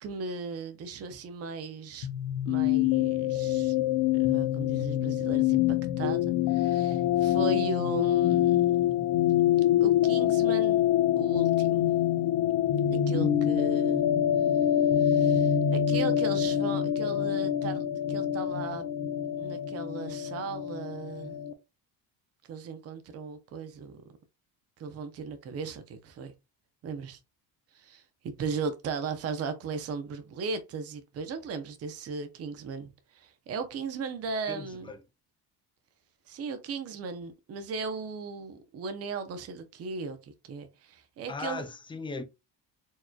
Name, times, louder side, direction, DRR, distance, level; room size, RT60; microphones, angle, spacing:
voice 1, 0.0-2.1 2.5-3.7 4.1-8.6 9.8-10.8 11.2-12.0 12.9-14.1 15.0-18.9 19.4-21.4 22.5-24.0 24.8-26.3 26.8-27.2 27.7-34.9 36.3-41.7, right 4 dB, 40° right, 0.7 m, -37 dB
sound 1, 2.0-21.5, left 11 dB, 70° left, 0.8 m, -25 dB
voice 2, 34.5-35.0 41.3-42.2, left 4 dB, 15° left, 0.4 m, -38 dB
4.5 x 3.0 x 2.3 m
cardioid pair, 145°, 40 cm